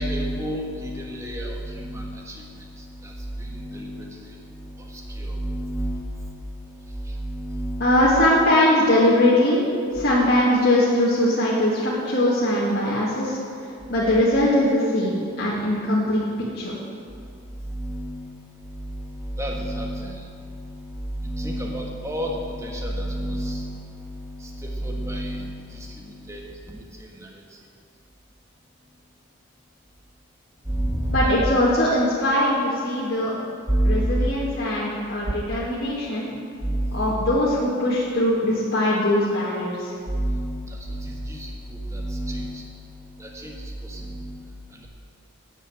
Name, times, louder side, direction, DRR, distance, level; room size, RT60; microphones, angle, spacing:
voice 1, 0.0-2.3 3.5-4.1 5.2-6.3 7.2-7.9 17.7-18.3 19.0-20.1 21.2-23.8 24.8-25.6 26.3-26.4 30.7-31.3 33.7-34.1 36.6-37.1 40.1-40.6 40.9-41.5 41.9-42.6 43.2-43.5 43.9-44.3, right 1 dB, 15° right, -1 dB, 1.4 m, -28 dB
voice 2, 7.8-9.6 9.9-13.4 13.9-16.3 16.5-16.7 31.1-33.4 33.8-36.3 36.9-39.9, left 1 dB, 50° left, -8 dB, 2.0 m, -21 dB
9.7 x 7.8 x 8.6 m, 2.4 s
head